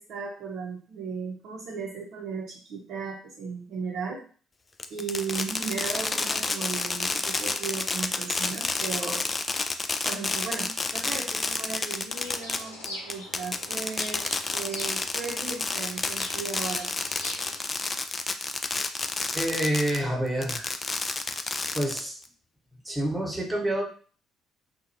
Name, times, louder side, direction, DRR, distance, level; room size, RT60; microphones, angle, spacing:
voice 1, 0.0-4.2 4.9-9.2 10.0-16.9, right 5 dB, 60° right, -4 dB, 0.7 m, -36 dB
Fireworks, 4.8-20.0 20.4-22.3, left 3 dB, 30° left, 0.3 m, -29 dB
sound 1, 12.2-17.6, left 1 dB, 85° left, 0.6 m, -43 dB
voice 2, 19.3-20.7 21.7-22.2 22.8-23.8, right 1 dB, 15° right, -1 dB, 1.1 m, -27 dB
2.8 x 2.3 x 2.6 m, 0.41 s
hypercardioid pair, 50°, 0 cm